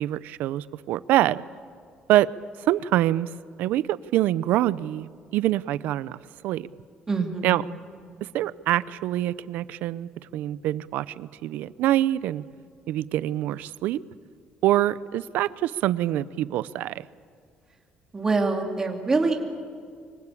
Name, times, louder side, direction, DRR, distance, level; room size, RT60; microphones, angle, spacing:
voice 1, 0.0-1.4 2.1-2.3 2.6-3.3 3.6-6.2 6.4-6.7 7.4-7.6 8.2-12.4 12.9-14.0 14.6-17.1, right 14 dB, 75° right, 18 dB, 0.6 m, -25 dB
voice 2, 7.1-7.6 18.1-19.4, right 3 dB, 20° right, 3 dB, 2.5 m, -25 dB
25.0 x 24.0 x 8.4 m, 2.1 s
cardioid pair, 160°, 3 cm